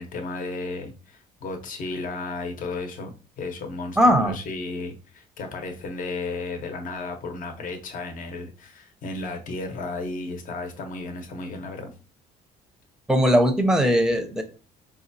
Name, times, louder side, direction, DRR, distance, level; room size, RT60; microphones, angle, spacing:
voice 1, 0.0-3.1 3.4-11.9, left 3 dB, 50° left, 4 dB, 0.9 m, -34 dB
voice 2, 4.0-4.4 13.1-14.4, equal, 5° right, 7 dB, 0.7 m, -19 dB
4.9 x 2.3 x 2.7 m, 0.34 s
cardioid pair, 110°, 17 cm